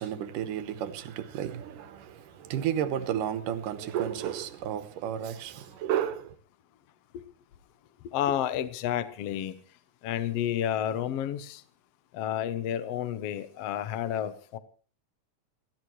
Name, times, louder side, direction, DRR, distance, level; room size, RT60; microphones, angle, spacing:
voice 1, 0.0-6.4, right 10 dB, 90° right, 2.7 m, -32 dB
voice 2, 8.0-9.5 10.0-11.6 12.1-14.6, left 10 dB, 65° left, 1.6 m, -30 dB
28.5 x 13.0 x 3.1 m
omnidirectional pair, 3.6 m